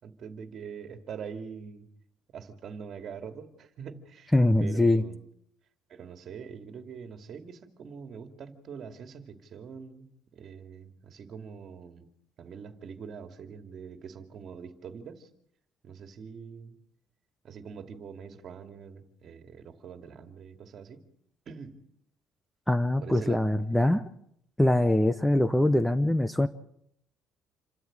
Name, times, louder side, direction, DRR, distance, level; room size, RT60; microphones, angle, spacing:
voice 1, 0.0-1.9 2.3-4.3 4.6-5.2 5.9-12.1 12.4-15.3 15.8-16.8 17.4-21.0 21.5-21.8 23.0-23.5, right 6 dB, 50° right, 7 dB, 2.5 m, -44 dB
voice 2, 4.3-5.0 22.7-24.0 24.6-26.5, left 1 dB, 5° left, 13 dB, 0.8 m, -23 dB
27.5 x 13.0 x 8.8 m, 0.72 s
cardioid pair, 135°, 0 cm